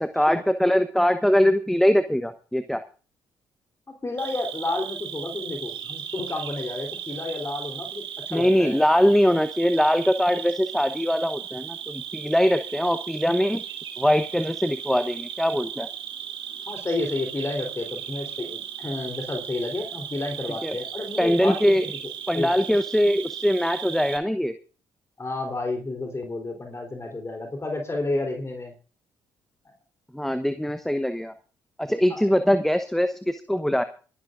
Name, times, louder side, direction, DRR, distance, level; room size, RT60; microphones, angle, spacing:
voice 1, 0.0-2.8 8.3-13.6 14.0-15.9 20.6-20.8 21.2-21.8 22.3-24.5 30.1-31.3 31.8-33.8, equal, 5° left, 10 dB, 1.0 m, -22 dB
voice 2, 3.9-8.8 16.7-21.9 22.3-22.7 25.2-28.7 29.7-29.8 32.1-32.3, left 2 dB, 30° left, 3 dB, 3.6 m, -31 dB
Cricket, 4.2-24.2, right 9 dB, 60° right, 2.8 m, -36 dB
25.5 x 12.5 x 2.6 m, 0.38 s
hypercardioid pair, 50°, 10 cm